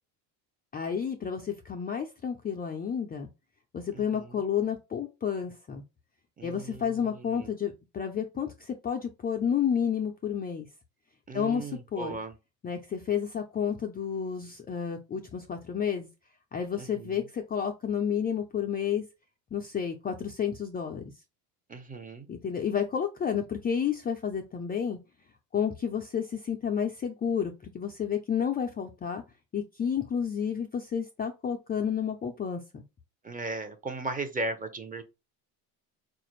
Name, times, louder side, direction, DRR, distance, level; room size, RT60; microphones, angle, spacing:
voice 1, 0.7-3.3 3.7-5.8 6.4-10.7 11.3-12.2 12.6-16.1 16.5-19.0 19.5-21.0 22.3-25.0 25.5-29.2 29.5-32.8, left 7 dB, 20° left, 0.4 m, -31 dB
voice 2, 3.9-4.4 6.4-7.5 11.3-12.3 16.8-17.2 21.7-22.3 33.2-35.0, right 2 dB, 20° right, 0.7 m, -37 dB
4.0 x 2.5 x 3.0 m
supercardioid pair, 90°, 47 cm